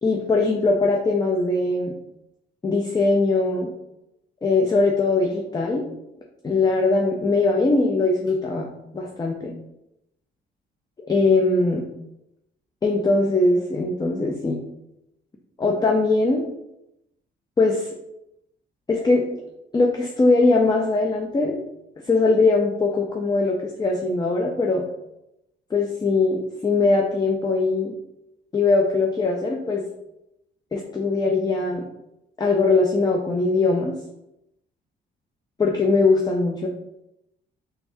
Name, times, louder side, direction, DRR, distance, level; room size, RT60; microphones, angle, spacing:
voice 1, 0.0-1.9 2.6-3.7 4.4-5.9 6.4-9.5 11.1-11.8 12.8-14.6 15.6-16.5 17.6-17.9 18.9-19.3 19.7-21.6 22.1-24.8 25.7-27.9 28.5-29.8 30.7-31.9 32.4-33.9 35.6-36.7, left 3 dB, 20° left, 1 dB, 0.5 m, -21 dB
3.4 x 3.4 x 2.6 m, 0.86 s
cardioid pair, 90°, 20 cm